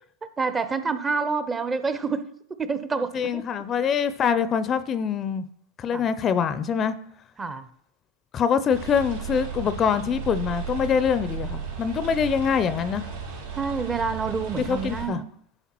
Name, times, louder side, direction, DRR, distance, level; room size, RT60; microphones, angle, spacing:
voice 1, 0.4-3.4 5.9-6.1 7.4-7.7 13.6-15.2, right 5 dB, 20° right, 11 dB, 0.5 m, -28 dB
voice 2, 3.1-5.4 5.8-6.9 8.3-13.0 14.6-15.2, left 7 dB, 30° left, 13 dB, 0.4 m, -24 dB
sound 1, 8.7-15.1, right 6 dB, 75° right, 3.1 m, -35 dB
10.5 x 4.0 x 3.0 m, 0.65 s
hypercardioid pair, 95°, 0 cm